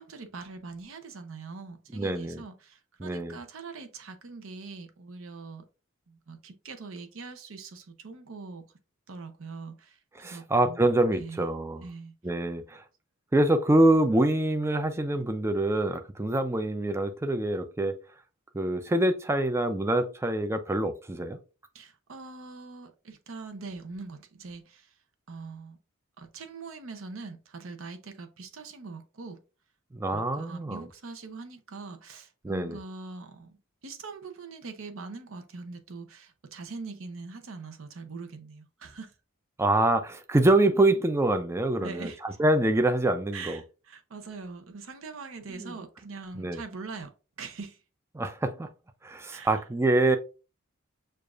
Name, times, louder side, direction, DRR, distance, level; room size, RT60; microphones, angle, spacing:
voice 1, 0.0-5.6 6.1-8.6 9.1-10.9 11.1-11.5 11.8-12.1 21.7-25.0 25.3-25.8 26.2-29.4 30.1-39.1 41.8-42.2 43.3-47.1 47.4-47.8 49.3-49.6, right 4 dB, 65° right, 0.7 m, -42 dB
voice 2, 1.9-2.4 3.0-3.4 10.2-11.8 12.2-12.8 13.3-18.0 18.5-21.4 29.9-30.8 32.4-32.8 39.6-43.6 45.6-45.7 46.4-46.6 48.1-48.7 49.0-50.2, right 1 dB, 15° right, 0.4 m, -25 dB
6.6 x 2.4 x 2.4 m
head